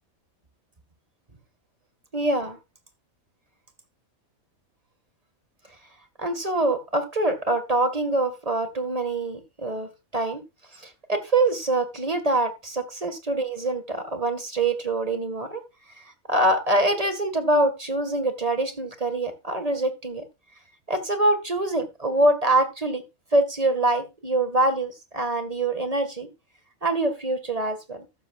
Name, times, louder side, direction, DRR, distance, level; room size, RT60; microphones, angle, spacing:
voice 1, 2.1-2.6 6.2-10.4 10.7-15.6 16.0-20.2 20.9-23.0 23.3-26.3 26.8-28.1, right 2 dB, 25° right, 8 dB, 2.0 m, -25 dB
14.0 x 12.5 x 2.5 m, 0.25 s
omnidirectional pair, 1.5 m